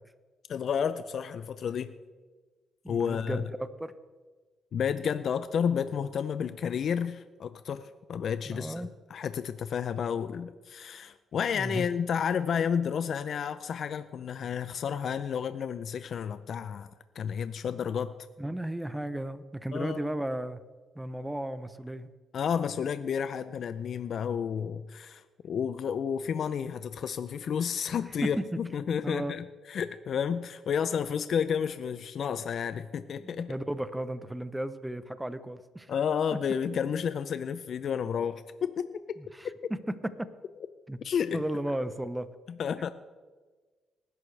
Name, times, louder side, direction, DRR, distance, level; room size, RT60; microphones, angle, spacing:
voice 1, 0.5-1.9 2.9-3.4 4.7-18.1 19.7-20.0 22.3-33.6 35.9-39.2 39.6-39.7 41.0-41.4 42.5-42.9, left 7 dB, 60° left, 12 dB, 0.5 m, -31 dB
voice 2, 2.8-3.9 8.5-8.9 11.5-11.9 18.4-20.6 20.9-22.1 28.4-28.5 29.0-29.3 33.2-35.9 36.7-36.8 39.2-39.5 40.2-40.3 40.9-41.0 41.3-42.3, right 1 dB, 10° right, 13 dB, 0.8 m, -34 dB
19.5 x 11.0 x 3.3 m, 1.3 s
cardioid pair, 90°, 0 cm